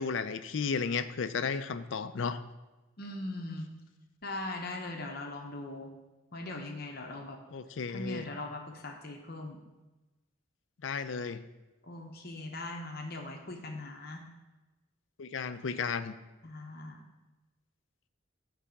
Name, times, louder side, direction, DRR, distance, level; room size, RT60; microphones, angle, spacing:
voice 1, 0.0-2.4 7.5-8.3 10.8-11.4 15.2-16.1, left 5 dB, 65° left, 11 dB, 0.5 m, -33 dB
voice 2, 3.0-3.7 4.2-5.9 6.3-7.4 7.9-9.6 11.8-14.2 16.4-17.0, left 2 dB, 50° left, 2 dB, 0.9 m, -40 dB
9.9 x 3.4 x 6.9 m, 1.1 s
head